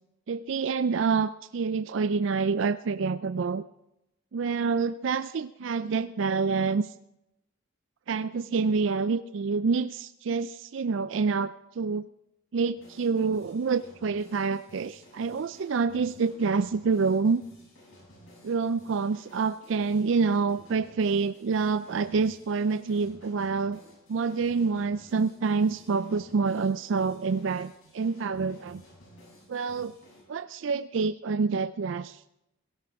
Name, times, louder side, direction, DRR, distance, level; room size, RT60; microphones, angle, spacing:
voice 1, 0.3-3.6 4.3-6.9 8.1-12.1 12.5-17.4 18.4-23.8 24.1-28.8 29.5-29.9 30.3-32.2, right 5 dB, 65° right, 13 dB, 0.4 m, -27 dB
sound 1, 12.7-30.2, left 1 dB, 80° left, 7.7 m, -54 dB
17.5 x 16.5 x 3.5 m, 0.86 s
head